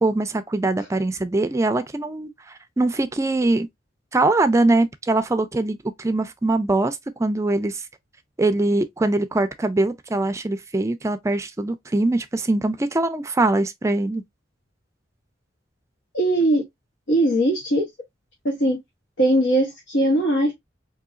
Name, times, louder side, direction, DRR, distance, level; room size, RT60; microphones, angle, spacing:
voice 1, 0.0-2.3 2.8-3.7 4.1-7.8 8.4-14.2, right 2 dB, 15° right, 0.3 m, -22 dB
voice 2, 16.1-16.6 17.1-17.9 18.4-18.8 19.2-20.5, right 1 dB, 90° left, 1.0 m, -20 dB
3.8 x 2.7 x 2.4 m
head